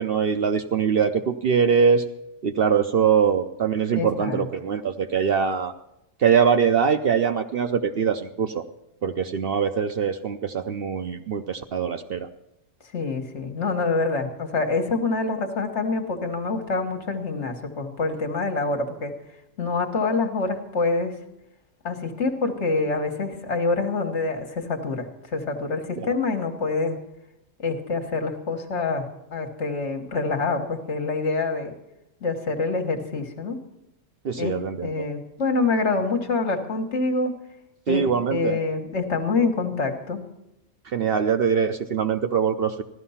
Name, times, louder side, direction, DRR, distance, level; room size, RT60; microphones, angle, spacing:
voice 1, 0.0-2.0 2.4-5.7 6.2-8.6 9.0-12.3 34.2-35.1 37.9-38.6 40.9-42.8, right 7 dB, 55° right, 8 dB, 0.7 m, -23 dB
voice 2, 3.9-4.5 12.9-19.1 19.6-21.1 21.8-25.1 25.3-27.0 27.6-31.7 32.2-33.6 34.3-37.3 37.9-38.0 38.3-40.2, left 3 dB, 60° left, 4 dB, 1.7 m, -26 dB
15.5 x 12.5 x 5.7 m, 0.86 s
omnidirectional pair, 1.3 m